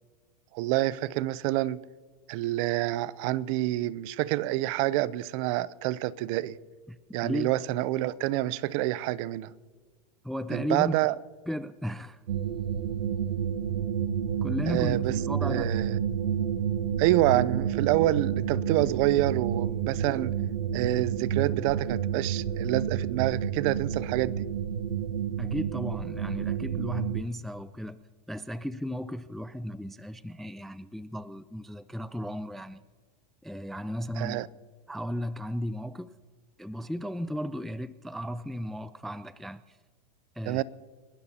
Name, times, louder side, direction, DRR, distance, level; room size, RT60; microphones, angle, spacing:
voice 1, 0.5-1.8 2.3-6.6 7.1-9.5 10.5-11.1 14.7-15.1 15.4-16.0 17.0-20.3 20.7-24.5 34.2-34.5 40.5-40.6, right 16 dB, 50° right, 0.6 m, -27 dB
voice 2, 7.2-7.5 10.2-11.1 11.5-12.2 14.4-15.7 25.4-28.0 28.3-32.8 33.4-34.4 34.9-36.1 36.6-39.6 40.4-40.6, equal, ahead, 0.3 m, -35 dB
sound 1, 12.3-27.2, right 8 dB, 90° right, 0.8 m, -30 dB
29.5 x 12.5 x 2.9 m
hypercardioid pair, 125°, 21 cm